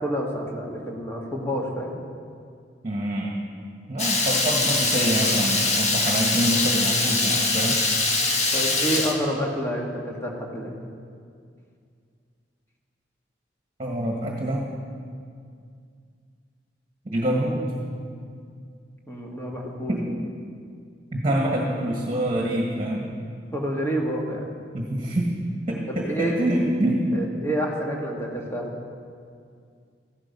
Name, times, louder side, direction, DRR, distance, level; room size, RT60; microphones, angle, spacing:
voice 1, 0.0-2.0 8.5-10.8 19.1-19.9 23.5-24.5 25.9-26.5 27.1-28.7, equal, 15° left, -1 dB, 1.8 m, -28 dB
voice 2, 2.8-3.4 3.9-7.8 13.8-14.7 17.0-17.7 19.9-20.2 21.1-23.1 24.7-25.3 25.7-27.1, right 1 dB, 30° right, -1 dB, 1.6 m, -26 dB
Water tap faucet / Liquid, 4.0-9.1, left 3 dB, 40° left, 1.4 m, -23 dB
14.5 x 12.0 x 5.4 m, 2.2 s
head